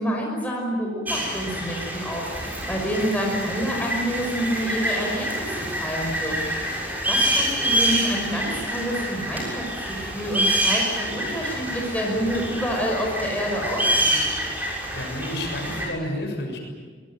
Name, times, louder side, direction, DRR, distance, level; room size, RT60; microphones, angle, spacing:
voice 1, 0.0-14.2, equal, 10° left, -1 dB, 5.8 m, -28 dB
sound 1, 1.1-15.9, right 1 dB, 10° right, 6.8 m, -27 dB
voice 2, 14.9-16.6, left 1 dB, 65° left, 3 dB, 6.8 m, -30 dB
24.5 x 20.5 x 9.2 m, 1.5 s
head